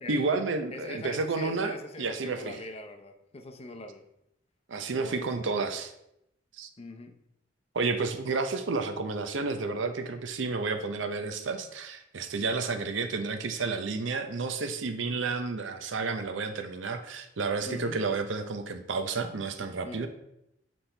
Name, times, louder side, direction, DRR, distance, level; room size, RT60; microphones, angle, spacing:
voice 1, 0.1-2.6 4.7-5.9 6.6-6.7 7.7-20.1, right 4 dB, 85° right, 7 dB, 0.6 m, -31 dB
voice 2, 0.7-4.0 5.0-5.7 6.8-7.1 15.0-15.2 17.6-18.0 19.8-20.0, left 2 dB, 35° left, 5 dB, 0.6 m, -42 dB
7.5 x 4.2 x 3.3 m, 0.81 s
head